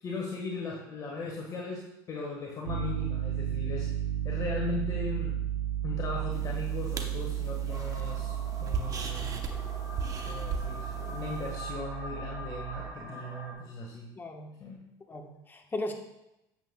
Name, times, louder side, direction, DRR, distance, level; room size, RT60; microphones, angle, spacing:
voice 1, 0.0-3.9 4.2-5.4 5.8-9.4 10.2-14.1 14.6-14.8, left 3 dB, 40° left, -1 dB, 1.4 m, -38 dB
Piano, 2.7-12.9, right 10 dB, 80° right, 0.8 m, -34 dB
sound 1, 6.3-11.5, right 4 dB, 35° right, 0.9 m, -39 dB
sound 2, 7.7-13.5, equal, 15° right, 2.8 m, -44 dB
voice 2, 14.2-14.5 15.1-15.9, left 2 dB, 20° left, 3 dB, 1.1 m, -36 dB
9.0 x 7.9 x 2.3 m, 0.88 s
supercardioid pair, 105°, 10 cm